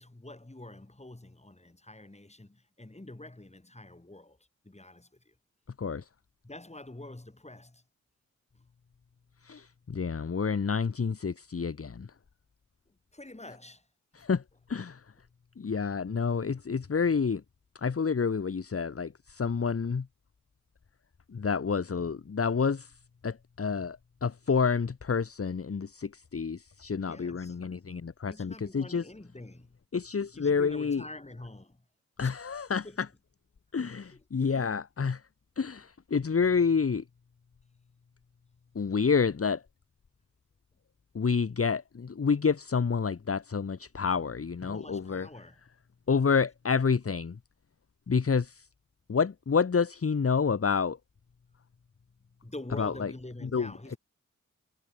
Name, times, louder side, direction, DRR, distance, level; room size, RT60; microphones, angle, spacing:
voice 1, 0.0-4.4 4.6-5.3 6.4-7.8 8.5-8.7 12.9-13.8 14.2-14.3 27.0-27.6 28.2-29.8 30.3-31.8 32.2-33.0 34.1-34.2 34.5-34.8 44.7-45.6 52.4-54.0, left 2 dB, 20° left, 4.9 m, -46 dB
voice 2, 9.4-12.1 14.1-14.4 14.7-15.0 15.6-17.4 17.8-20.1 21.3-22.9 23.2-29.0 29.9-31.0 32.2-33.1 33.7-35.2 35.6-37.0 38.7-39.6 41.1-45.3 46.1-47.4 48.1-48.6 49.1-51.0 52.8-53.1 53.4-53.7, left 5 dB, 45° left, 1.3 m, -28 dB
cardioid pair, 45°, 32 cm